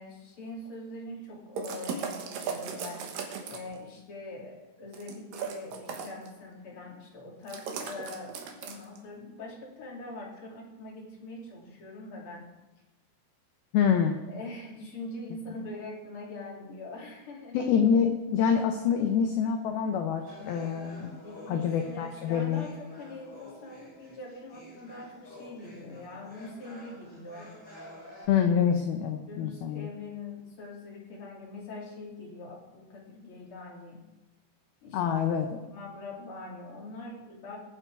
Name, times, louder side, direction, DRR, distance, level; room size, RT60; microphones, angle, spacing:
voice 1, 0.0-3.0 3.5-12.5 14.3-17.6 18.9-19.0 21.2-27.5 28.4-28.5 29.3-34.0 34.8-35.0 35.6-37.6, left 2 dB, 35° left, -2 dB, 2.6 m, -43 dB
sound 1, 1.6-3.8 4.9-6.3 7.5-9.0, right 6 dB, 70° right, 2.3 m, -37 dB
voice 2, 13.7-14.1 17.5-21.2 21.5-22.7 28.3-29.9 34.9-35.6, left 7 dB, 85° left, 5 dB, 2.1 m, -26 dB
sound 2, 20.3-28.3, left 1 dB, 5° left, 5.5 m, -49 dB
22.5 x 7.5 x 4.7 m, 1.1 s
omnidirectional pair, 5.7 m